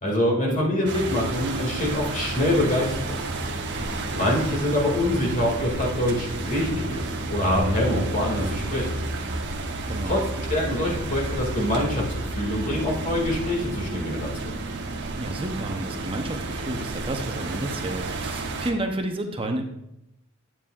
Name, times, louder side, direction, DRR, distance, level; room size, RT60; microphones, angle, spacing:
voice 1, 0.0-3.2 4.1-8.9 10.0-10.2 10.5-12.1 12.3-14.4, left 1 dB, 35° left, -2 dB, 2.2 m, -25 dB
sound 1, 0.8-18.7, right 2 dB, 55° right, 0.9 m, -31 dB
voice 2, 9.9-10.2 15.2-19.6, right 1 dB, 25° right, 4 dB, 0.7 m, -30 dB
9.1 x 8.9 x 2.4 m, 0.84 s
head